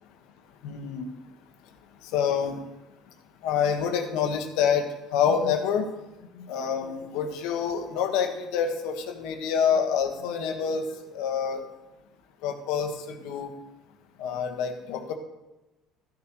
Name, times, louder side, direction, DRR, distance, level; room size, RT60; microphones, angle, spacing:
voice 1, 0.6-1.0 2.1-2.6 3.4-5.9 6.4-11.6 12.4-13.5 14.2-15.1, left 7 dB, 80° left, 5 dB, 1.3 m, -27 dB
14.0 x 7.8 x 3.0 m, 1.0 s
cardioid pair, 125°, 0 cm